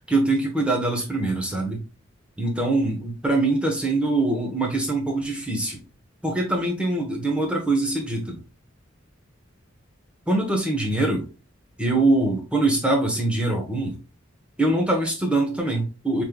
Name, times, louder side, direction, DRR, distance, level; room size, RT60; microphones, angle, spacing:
voice 1, 0.1-1.8 2.4-5.8 6.2-8.4 10.3-11.3 11.8-14.0 14.6-16.2, right 2 dB, 5° right, 1 dB, 0.9 m, -23 dB
5.4 x 3.2 x 2.2 m, 0.31 s
head